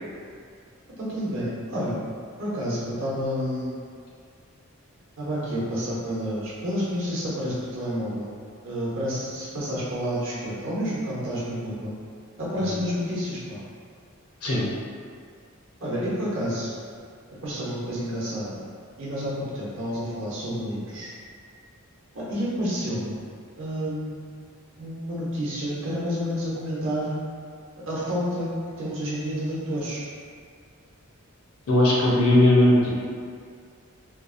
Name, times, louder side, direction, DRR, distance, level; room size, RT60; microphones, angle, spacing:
voice 1, 1.0-2.0 2.4-3.8 5.2-8.3 8.6-11.9 12.4-13.6 15.8-16.7 17.4-18.6 19.0-21.1 22.1-23.2 23.6-24.2 24.8-27.2 27.9-28.5 28.8-30.0, equal, 60° right, -7 dB, 0.8 m, -29 dB
voice 2, 31.7-32.9, left 1 dB, 90° left, -6 dB, 0.7 m, -18 dB
2.8 x 2.1 x 2.5 m, 2.2 s
head